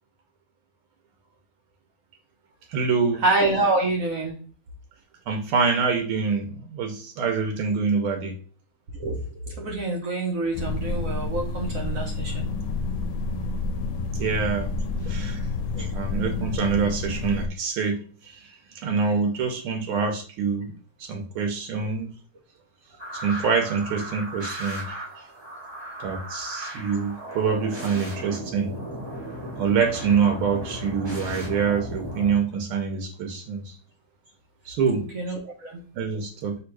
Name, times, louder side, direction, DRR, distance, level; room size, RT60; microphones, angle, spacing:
voice 1, 2.7-3.2 5.3-8.3 14.2-14.7 15.1-15.4 15.9-18.4 18.8-20.7 21.0-22.1 23.2-25.0 26.0-28.7 29.6-33.7 34.7-35.1 35.9-36.6, right 5 dB, 85° right, 3 dB, 1.6 m, -25 dB
voice 2, 3.2-4.4 9.0-9.2 9.5-12.5 15.7-15.9 35.1-35.8, right 2 dB, 65° right, 1 dB, 0.8 m, -26 dB
sound 1, 10.5-17.5, left 3 dB, 80° left, 1.4 m, -29 dB
sound 2, 23.0-32.3, right 1 dB, 15° right, 1.0 m, -36 dB
3.5 x 3.0 x 4.6 m, 0.40 s
omnidirectional pair, 2.3 m